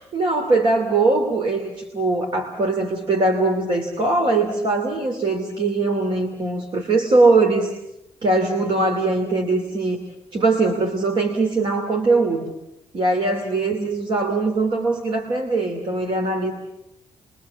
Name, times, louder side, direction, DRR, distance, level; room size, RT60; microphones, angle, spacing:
voice 1, 0.0-7.7 8.2-10.0 10.3-12.4 12.9-16.5, right 3 dB, 50° right, 4 dB, 2.8 m, -21 dB
28.5 x 23.5 x 7.4 m, 0.87 s
cardioid pair, 140°, 11 cm